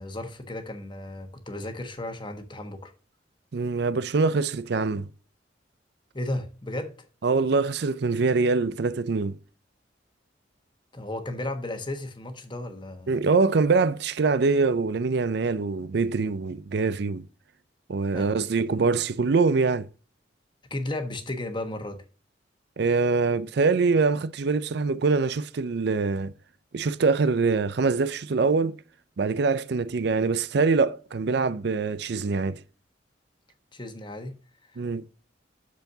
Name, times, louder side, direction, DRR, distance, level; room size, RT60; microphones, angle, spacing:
voice 1, 0.0-2.9 6.1-7.1 10.9-13.1 18.1-18.3 20.7-22.0 33.7-34.4 34.7-34.8, left 1 dB, 25° left, 1.2 m, -34 dB
voice 2, 3.5-5.1 7.2-9.4 13.1-17.2 17.9-19.9 22.8-26.3 26.7-28.8 29.2-32.6 34.8-35.0, right 4 dB, 60° right, 0.5 m, -24 dB
13.0 x 4.5 x 2.7 m
head